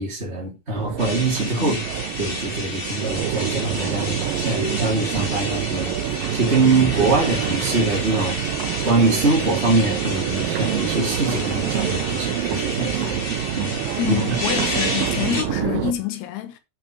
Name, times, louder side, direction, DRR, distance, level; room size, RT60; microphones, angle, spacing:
voice 1, 0.0-1.8 2.2-8.5 8.8-13.2 13.6-13.8 14.1-14.2 15.1-15.3, right 3 dB, 20° right, 2.3 m, -23 dB
Crowd, 0.8-15.9, right 11 dB, 75° right, 2.2 m, -27 dB
sound 1, 1.0-15.4, left 2 dB, 40° left, 0.7 m, -31 dB
voice 2, 14.0-16.6, left 12 dB, 75° left, 3.2 m, -27 dB
9.0 x 5.8 x 5.1 m
omnidirectional pair, 4.9 m